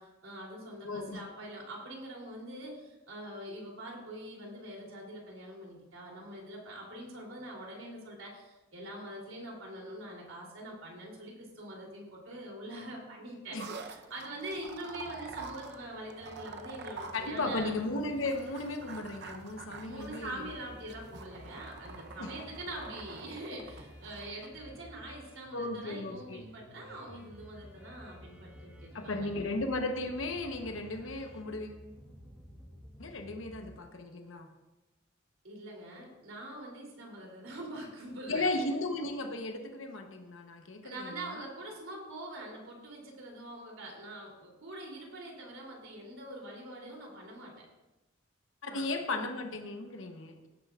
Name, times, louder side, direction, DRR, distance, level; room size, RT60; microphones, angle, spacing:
voice 1, 0.0-17.7 19.8-29.3 35.4-38.5 40.8-47.7 48.6-48.9, right 1 dB, 85° right, -2 dB, 3.2 m, -44 dB
voice 2, 0.8-1.2 13.5-13.6 17.1-20.3 22.2-22.3 25.5-26.4 28.9-31.8 33.0-34.5 38.3-41.4 48.6-50.5, left 2 dB, 75° left, 5 dB, 1.0 m, -35 dB
sound 1, 13.6-24.5, right 4 dB, 55° right, 0.8 m, -47 dB
sound 2, 14.9-33.8, equal, 5° right, 2.0 m, -53 dB
17.0 x 9.1 x 2.5 m, 1.1 s
head